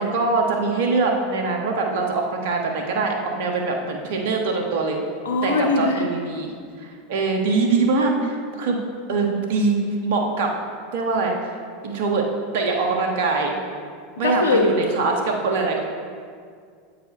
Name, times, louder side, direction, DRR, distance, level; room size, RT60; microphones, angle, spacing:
voice 1, 0.0-5.0 5.4-8.8 9.1-10.6 10.9-11.4 11.8-12.3 12.5-13.5 14.2-15.9, right 3 dB, 65° right, 2 dB, 1.2 m, -23 dB
voice 2, 5.2-6.0 14.2-14.7, left 3 dB, 80° left, 2 dB, 1.0 m, -20 dB
8.1 x 4.8 x 5.0 m, 2.1 s
hypercardioid pair, 85°, 0 cm